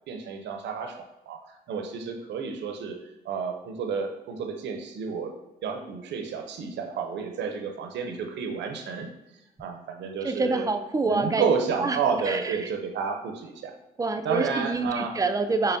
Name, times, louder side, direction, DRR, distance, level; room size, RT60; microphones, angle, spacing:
voice 1, 0.1-3.0 3.2-5.3 5.6-9.1 9.6-10.7 11.1-13.7 14.2-15.2, right 6 dB, 75° right, 4 dB, 0.6 m, -31 dB
voice 2, 10.2-11.4 11.8-12.0 12.2-12.7 14.0-15.8, right 3 dB, 20° right, 7 dB, 0.4 m, -26 dB
5.4 x 2.1 x 2.6 m, 0.95 s
supercardioid pair, 60°, 18 cm